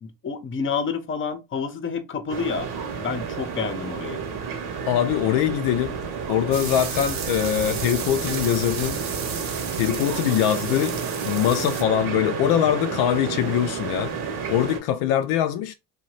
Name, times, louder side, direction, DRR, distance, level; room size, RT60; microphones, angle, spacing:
voice 1, 0.0-2.7 3.0-4.2, left 6 dB, 30° left, 0.7 m, -29 dB
sound 1, 2.3-14.8, right 6 dB, 65° right, 1.0 m, -31 dB
voice 2, 4.9-6.0 6.3-9.0 9.8-14.1 14.5-15.7, left 11 dB, 75° left, 0.5 m, -23 dB
sound 2, 6.5-11.8, right 6 dB, 45° right, 0.8 m, -34 dB
2.8 x 2.2 x 3.0 m
supercardioid pair, 70°, 40 cm